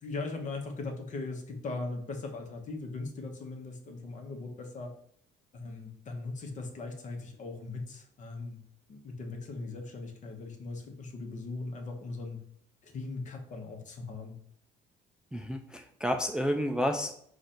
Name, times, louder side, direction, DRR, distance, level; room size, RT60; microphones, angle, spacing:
voice 1, 0.0-4.9 5.5-8.6 8.9-12.4 12.8-14.4, left 3 dB, 45° left, 3 dB, 1.0 m, -39 dB
voice 2, 15.3-17.1, equal, 5° right, 4 dB, 0.3 m, -30 dB
4.9 x 2.5 x 4.3 m, 0.67 s
cardioid pair, 110°, 17 cm